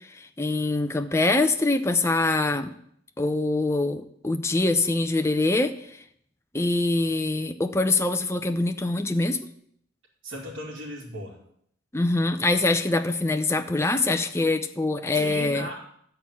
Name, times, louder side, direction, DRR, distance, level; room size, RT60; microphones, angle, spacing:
voice 1, 0.2-2.7 3.2-5.7 6.5-9.4 11.9-15.7, left 2 dB, 15° left, 7 dB, 0.6 m, -24 dB
voice 2, 10.2-11.4 15.1-15.8, equal, 80° right, -8 dB, 2.6 m, -36 dB
12.0 x 4.5 x 8.4 m, 0.68 s
head